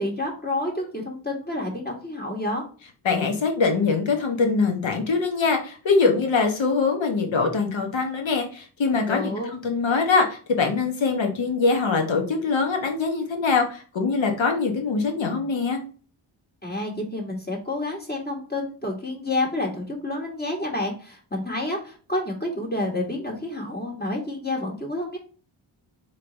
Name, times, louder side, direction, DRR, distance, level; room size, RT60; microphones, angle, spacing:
voice 1, 0.0-2.6 9.1-9.5 16.6-25.2, left 2 dB, 20° left, -1 dB, 1.7 m, -29 dB
voice 2, 3.0-15.8, left 4 dB, 65° left, 4 dB, 1.2 m, -23 dB
3.1 x 3.1 x 4.0 m, 0.39 s
cardioid pair, 50°, 50 cm